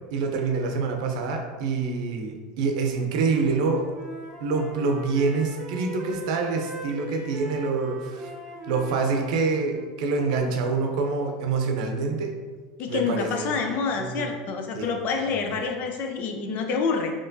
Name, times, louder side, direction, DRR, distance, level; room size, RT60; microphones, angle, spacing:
voice 1, 0.1-3.8 4.4-8.3 8.7-12.3 12.9-13.5 14.0-14.3 14.7-14.9, right 4 dB, 75° right, 3 dB, 0.6 m, -26 dB
Wind instrument woodwind instrument, 3.1-9.9, left 1 dB, 20° right, 0.8 m, -39 dB
voice 2, 12.8-17.1, left 5 dB, 50° left, 3 dB, 0.6 m, -27 dB
4.3 x 3.0 x 2.7 m, 1.5 s
supercardioid pair, 120°, 4 cm